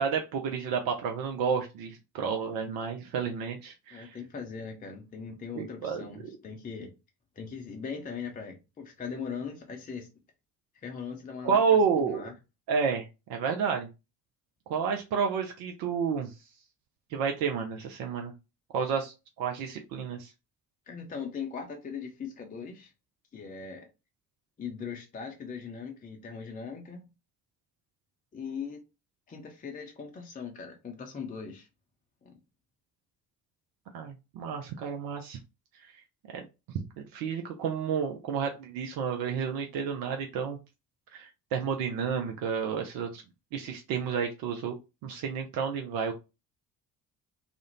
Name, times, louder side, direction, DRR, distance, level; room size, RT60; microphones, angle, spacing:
voice 1, 0.0-4.2 5.6-6.0 11.4-12.2 12.7-13.0 13.3-13.9 14.7-16.3 17.1-18.3 18.7-20.3 33.9-35.4 36.3-36.5 37.0-40.6 41.1-43.2 43.5-44.7 45.0-46.1, right 6 dB, 50° right, 0.5 m, -30 dB
voice 2, 3.9-6.9 7.4-10.1 10.8-12.3 20.9-22.9 23.3-23.9 24.6-27.1 28.3-28.8 29.3-31.7 32.2-32.3, left 6 dB, 20° left, 0.6 m, -40 dB
2.4 x 2.0 x 2.9 m
figure-of-eight pair, 45°, 46 cm